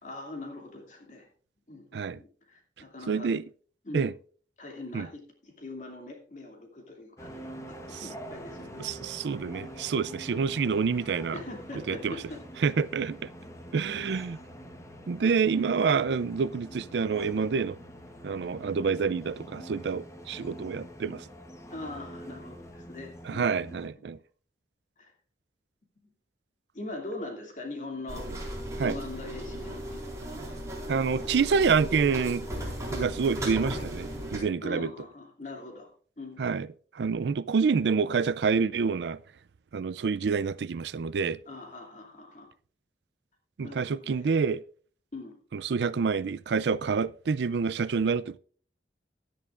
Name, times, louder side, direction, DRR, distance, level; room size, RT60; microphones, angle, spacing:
voice 1, 0.0-1.3 1.7-3.3 3.8-4.1 4.6-8.9 11.3-12.4 15.2-15.4 21.7-23.5 23.8-24.1 25.0-25.1 26.7-28.3 28.8-30.4 34.6-35.9 36.2-36.6 41.5-42.5 43.6-44.3 45.1-45.4, left 2 dB, 45° left, 2.6 m, -42 dB
voice 2, 3.1-3.4 3.9-4.1 4.9-5.1 7.9-8.1 8.8-11.4 11.9-12.2 12.6-13.3 13.7-14.4 15.1-17.8 18.2-21.3 23.3-24.2 28.8-29.0 30.9-32.4 32.9-34.9 36.4-36.7 36.9-39.2 39.7-41.4 43.6-44.6 45.5-48.4, right 5 dB, 70° right, 0.4 m, -27 dB
sound 1, 7.2-23.9, equal, 15° left, 1.2 m, -45 dB
sound 2, 28.1-34.4, right 1 dB, 20° right, 4.3 m, -36 dB
16.5 x 10.5 x 2.5 m
head